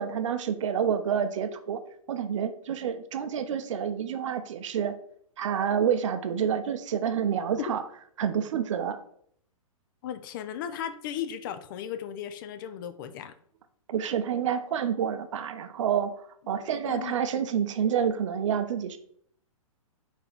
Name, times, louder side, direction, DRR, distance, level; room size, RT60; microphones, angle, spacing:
voice 1, 0.0-1.8 2.1-5.0 5.4-7.8 8.2-9.0 13.9-16.2 16.5-19.0, right 8 dB, 60° right, 10 dB, 0.5 m, -28 dB
voice 2, 10.0-13.3 16.8-17.2, left 9 dB, 35° left, 11 dB, 0.3 m, -36 dB
4.5 x 3.4 x 3.3 m, 0.63 s
figure-of-eight pair, 120°, 18 cm